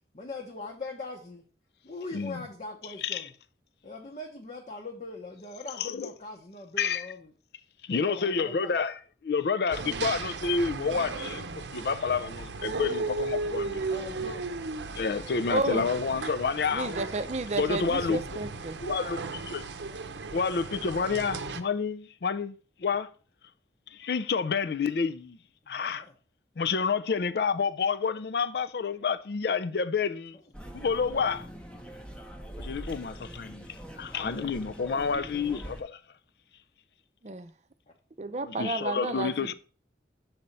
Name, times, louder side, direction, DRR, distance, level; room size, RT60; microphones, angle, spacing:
voice 1, 0.1-1.4 1.8-3.3 3.8-7.3 7.9-8.8 13.9-14.5 25.6-26.1 35.3-35.6, left 2 dB, 40° left, 0.9 m, -41 dB
voice 2, 3.0-3.3 5.8-6.1 6.8-7.1 7.8-11.5 11.7-13.8 14.9-17.0 17.6-18.2 18.8-19.7 20.3-22.5 22.8-23.1 23.9-25.4 25.7-26.0 26.6-30.4 30.7-31.5 32.6-36.0 38.4-39.5, left 5 dB, 65° left, 0.4 m, -29 dB
sound 1, 9.7-21.6, right 3 dB, 85° right, 0.7 m, -36 dB
voice 3, 15.5-15.9 16.7-18.8 37.2-37.5 38.2-39.5, right 2 dB, 40° right, 0.6 m, -32 dB
sound 2, 30.5-35.8, equal, 5° left, 0.8 m, -43 dB
6.9 x 4.3 x 5.3 m
head